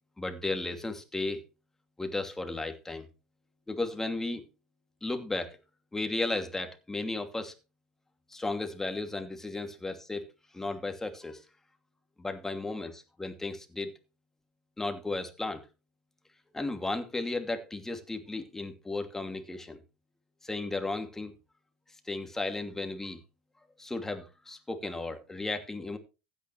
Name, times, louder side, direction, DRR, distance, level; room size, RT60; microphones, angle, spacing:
voice 1, 0.2-1.4 2.0-3.1 3.7-4.4 5.0-5.6 5.9-7.5 8.3-10.3 10.5-11.4 12.2-13.9 14.8-15.6 16.5-19.8 20.4-21.3 22.0-23.2 23.8-26.0, left 2 dB, 10° left, 2.6 m, -34 dB
15.5 x 9.5 x 3.3 m
hypercardioid pair, 85°, 4 cm